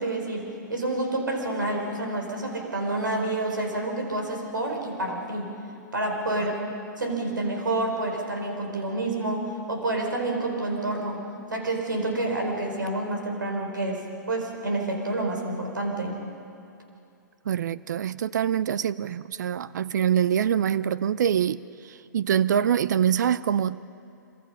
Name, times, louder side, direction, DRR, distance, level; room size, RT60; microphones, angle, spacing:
voice 1, 0.0-5.5 5.9-6.6 7.0-11.2 11.5-16.2, right 2 dB, 85° right, 4.5 m, -28 dB
voice 2, 17.5-21.6 21.9-23.9, right 9 dB, 65° right, 0.5 m, -24 dB
26.0 x 24.5 x 5.6 m
hypercardioid pair, 115°, 10 cm